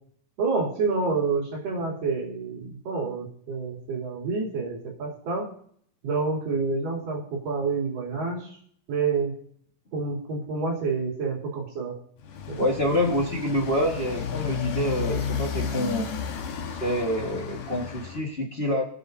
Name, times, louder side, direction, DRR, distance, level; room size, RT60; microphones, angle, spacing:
voice 1, 0.4-5.5 6.0-8.6 8.9-9.4 9.9-12.0 12.5-12.6, right 4 dB, 70° right, -5 dB, 4.7 m, -28 dB
Motorcycle, 12.2-18.2, left 6 dB, 70° left, 2.7 m, -32 dB
voice 2, 12.6-16.0 16.7-18.8, left 1 dB, 40° left, -1 dB, 0.8 m, -26 dB
26.5 x 9.7 x 2.7 m, 0.63 s
omnidirectional pair, 4.0 m